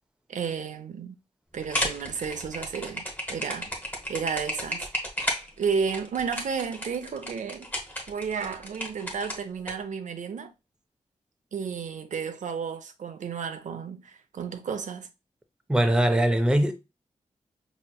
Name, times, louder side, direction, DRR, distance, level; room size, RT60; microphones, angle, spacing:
voice 1, 0.3-1.2 1.5-3.0 3.3-3.7 4.1-4.9 5.6-7.7 8.1-10.5 11.5-15.1, right 6 dB, 75° right, 0.6 m, -32 dB
sound 1, 1.6-9.7, left 1 dB, 15° left, 1.0 m, -33 dB
voice 2, 15.7-16.7, right 1 dB, 5° right, 0.5 m, -21 dB
5.3 x 3.0 x 2.2 m
wide cardioid pair, 140°, 13 cm